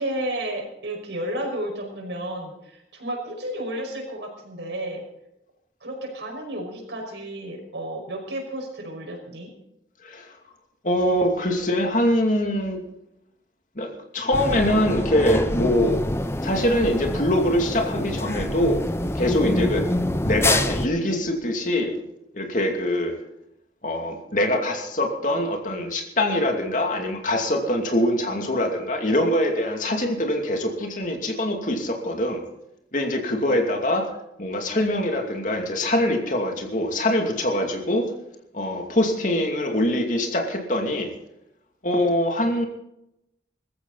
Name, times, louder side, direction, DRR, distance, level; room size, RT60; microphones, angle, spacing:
voice 1, 0.0-5.0 5.8-9.5, right 1 dB, 90° right, 2 dB, 5.5 m, -32 dB
voice 2, 10.0-10.3 10.8-12.8 13.8-16.0 16.4-18.8 19.1-19.9 20.2-21.9 22.3-23.1 23.8-32.4 32.9-34.1 34.4-38.1 38.5-41.1 41.8-42.7, left 1 dB, 45° left, 3 dB, 2.6 m, -23 dB
sound 1, 14.3-20.9, left 1 dB, 15° left, 0.7 m, -26 dB
20.0 x 14.5 x 4.1 m, 0.84 s
head